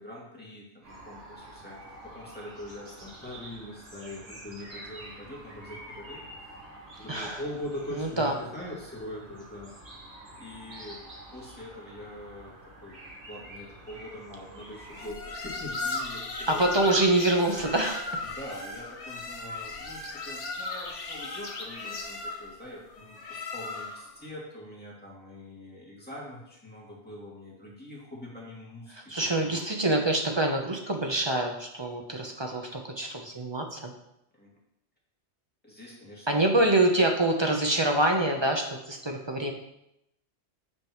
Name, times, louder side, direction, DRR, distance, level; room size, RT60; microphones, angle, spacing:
voice 1, 0.0-6.6 7.0-9.7 10.4-11.0 11.3-12.5 12.8-13.0 13.3-16.7 17.5-17.6 18.2-29.6 34.3-34.5 35.6-36.7, left 1 dB, 10° left, -6 dB, 2.2 m, -43 dB
sound 1, 0.8-15.1, right 1 dB, 85° right, 2.4 m, -47 dB
voice 2, 7.1-7.4 7.9-8.3 16.5-18.0 28.9-33.9 36.3-39.5, right 2 dB, 25° right, 2 dB, 0.7 m, -26 dB
sound 2, 14.9-24.2, left 3 dB, 85° left, 1.4 m, -36 dB
8.6 x 5.6 x 3.0 m, 0.80 s
omnidirectional pair, 1.2 m